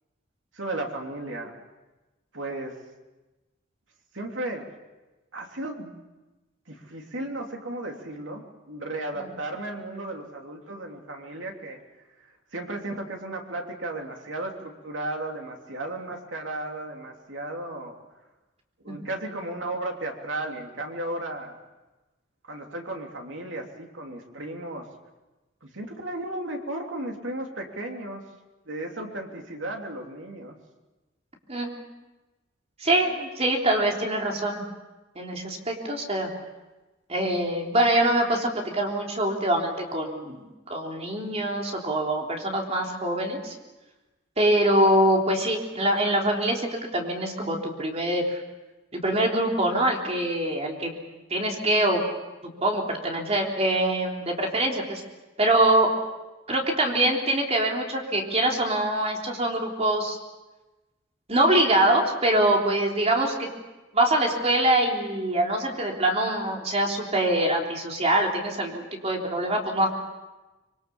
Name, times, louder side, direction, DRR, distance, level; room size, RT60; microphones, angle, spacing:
voice 1, 0.5-1.6 2.3-2.8 4.1-4.7 5.3-6.0 6.7-11.8 12.5-17.9 18.8-21.6 22.5-24.9 25.6-28.2 28.6-30.6, right 1 dB, 70° right, 2 dB, 3.1 m, -34 dB
voice 2, 32.8-34.6 35.2-36.3 37.1-43.5 44.4-48.2 48.9-50.9 51.3-52.0 52.6-55.0 55.4-55.9 56.5-60.2 61.3-63.5 63.9-69.9, right 1 dB, 35° right, 0 dB, 3.7 m, -24 dB
25.5 x 23.0 x 7.1 m, 1.1 s
head